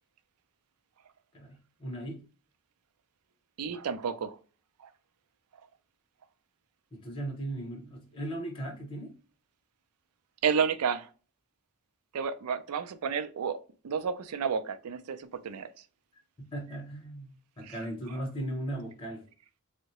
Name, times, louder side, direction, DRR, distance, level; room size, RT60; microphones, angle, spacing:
voice 1, 1.3-2.2 6.9-9.1 16.4-19.2, right 1 dB, 25° left, 0.7 m, -37 dB
voice 2, 3.6-4.4 10.4-11.1 12.1-13.6 13.8-15.7 17.6-17.8, right 6 dB, 90° right, 0.4 m, -31 dB
3.6 x 2.1 x 2.9 m
head